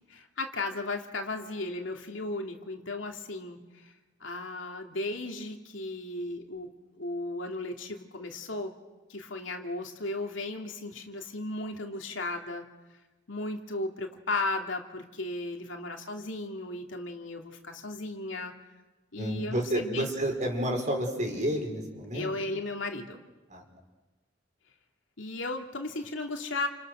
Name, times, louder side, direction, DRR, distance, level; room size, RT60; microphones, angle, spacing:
voice 1, 0.1-3.9 4.2-8.7 9.1-12.7 13.3-18.5 19.1-20.1 22.1-23.2 25.2-26.7, left 2 dB, 85° left, 3 dB, 2.8 m, -35 dB
voice 2, 19.2-22.3 23.5-23.6, right 1 dB, 40° right, 2 dB, 5.7 m, -30 dB
29.5 x 29.0 x 6.4 m, 1.2 s
head